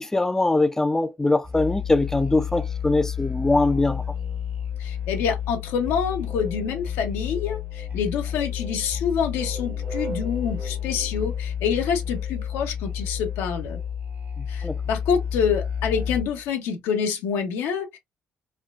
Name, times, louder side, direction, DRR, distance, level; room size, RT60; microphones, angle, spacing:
voice 1, 0.0-4.0 14.4-14.8, left 2 dB, 10° left, 0.4 m, -22 dB
Musical instrument, 1.4-16.5, left 8 dB, 50° right, 1.1 m, -30 dB
voice 2, 4.8-13.8 14.5-18.0, left 7 dB, 85° left, 0.8 m, -27 dB
3.6 x 2.3 x 2.4 m
supercardioid pair, 80°, 4 cm